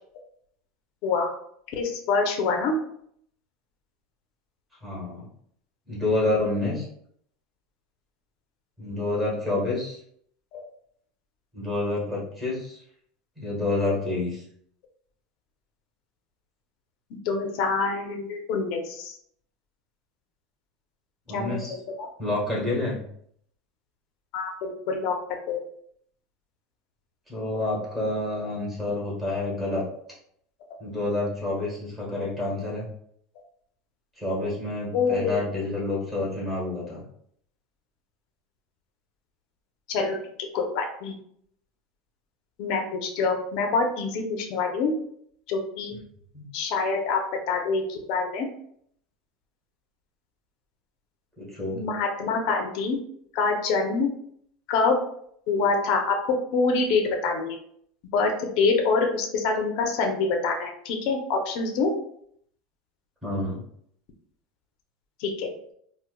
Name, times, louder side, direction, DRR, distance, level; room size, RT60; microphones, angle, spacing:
voice 1, 1.7-2.7 10.5-10.6 17.2-19.2 21.3-22.1 24.3-25.2 25.5-25.6 34.9-35.4 39.9-40.2 40.5-41.1 42.6-45.0 45.5-46.0 46.5-47.2 47.5-48.5 51.8-53.0 53.3-54.1 54.7-55.0 55.5-56.2 56.5-57.6 58.1-62.0 65.2-65.5, left 4 dB, 55° left, 2 dB, 0.6 m, -25 dB
voice 2, 4.8-5.2 5.9-6.8 8.8-10.0 11.5-12.8 13.4-14.4 21.3-21.7 22.2-23.0 27.3-29.8 30.8-32.9 34.2-37.0 46.3-46.4 51.4-51.8 63.2-63.6, left 2 dB, 15° right, -5 dB, 1.2 m, -28 dB
4.2 x 2.2 x 2.2 m, 0.66 s
supercardioid pair, 150°, 0 cm